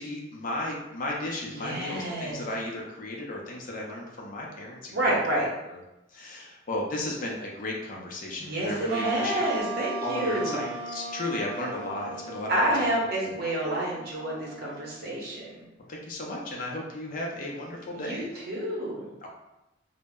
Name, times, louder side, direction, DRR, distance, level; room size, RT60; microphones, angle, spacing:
voice 1, 0.0-5.2 5.7-5.8 6.1-9.5 10.0-12.9 13.2-13.3 15.9-18.3 19.2-19.3, left 1 dB, 45° left, -2 dB, 0.5 m, -35 dB
voice 2, 1.6-2.4 4.9-5.5 8.4-10.6 12.5-15.6 17.9-19.1, right 1 dB, 55° right, -5 dB, 0.8 m, -29 dB
sound 1, 8.9-15.6, right 3 dB, 80° right, 0.4 m, -37 dB
2.0 x 2.0 x 3.4 m, 0.94 s
head